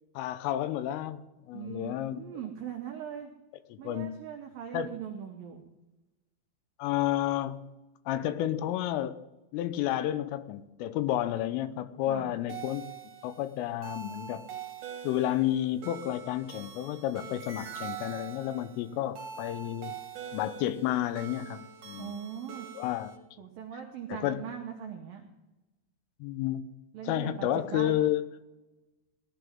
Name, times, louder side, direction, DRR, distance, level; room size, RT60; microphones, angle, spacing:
voice 1, 0.2-1.2 1.5-2.2 3.7-4.1 4.7-4.9 6.8-7.6 8.1-9.2 9.5-12.9 13.2-14.5 15.0-20.0 20.3-22.2 22.8-23.2 24.1-24.4 26.2-26.7 27.1-28.3, left 12 dB, 90° left, 12 dB, 3.3 m, -31 dB
voice 2, 1.5-3.3 3.8-5.6 12.1-12.3 21.9-22.7 23.4-25.3 26.9-28.0, right 9 dB, 90° right, 2 dB, 2.0 m, -40 dB
sound 1, 12.5-23.2, right 7 dB, 55° right, 2.8 m, -44 dB
18.5 x 13.0 x 3.6 m, 1.0 s
omnidirectional pair, 5.7 m